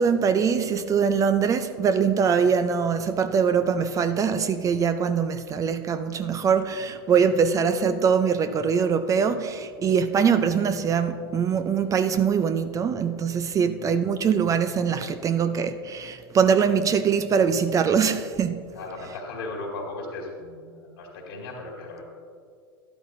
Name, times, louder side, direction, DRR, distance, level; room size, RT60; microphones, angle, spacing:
voice 1, 0.0-18.6, right 6 dB, 25° right, 11 dB, 0.5 m, -23 dB
voice 2, 18.7-22.0, left 2 dB, 75° left, -1 dB, 2.2 m, -37 dB
12.0 x 12.0 x 2.6 m, 2.2 s
hypercardioid pair, 95°, 13 cm